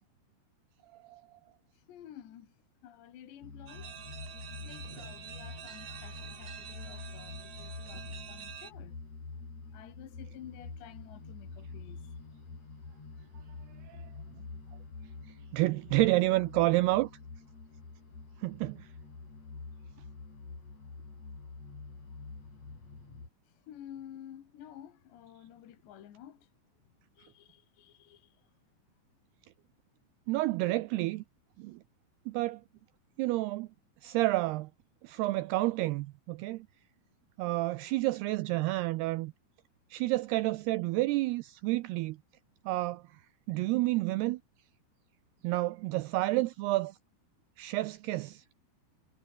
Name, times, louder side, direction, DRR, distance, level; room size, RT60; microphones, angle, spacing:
voice 1, 1.7-2.5 2.8-4.0 4.6-8.9 9.7-12.2 23.5-26.5 27.2-28.5, left 10 dB, 70° left, 4.5 m, -51 dB
sound 1, 3.4-23.3, left 4 dB, 35° left, 6.9 m, -47 dB
sound 2, 3.7-8.7, right 9 dB, 60° right, 4.3 m, -47 dB
voice 2, 15.5-17.1 18.4-18.9 30.3-31.2 31.6-31.8 32.3-32.6 33.2-33.7 34.0-34.7 35.0-36.7 37.4-39.3 39.9-42.2 42.7-43.0 43.5-44.4 45.4-47.0 47.6-48.4, right 19 dB, 85° right, 2.3 m, -29 dB
omnidirectional pair, 5.3 m